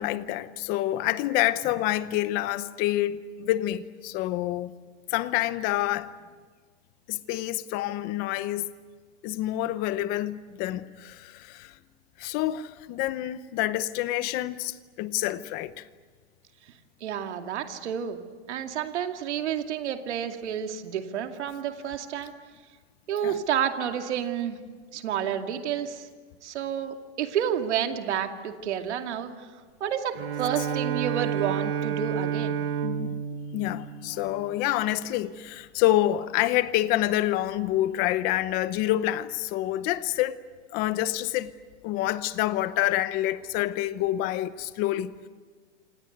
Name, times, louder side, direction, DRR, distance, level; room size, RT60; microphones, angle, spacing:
voice 1, 0.0-4.7 5.1-6.1 7.1-8.7 9.2-11.7 12.2-15.8 23.2-23.4 32.8-33.2 33.5-40.4 40.7-41.5 41.8-45.1, left 14 dB, 25° left, 0.9 m, -27 dB
voice 2, 17.0-18.2 18.5-22.3 23.1-24.6 24.9-26.1 26.4-29.3 29.8-32.6, right 9 dB, 75° right, 2.5 m, -30 dB
Bowed string instrument, 30.1-34.8, right 8 dB, 55° right, 2.0 m, -30 dB
27.5 x 27.0 x 8.1 m
supercardioid pair, 170°, 34 cm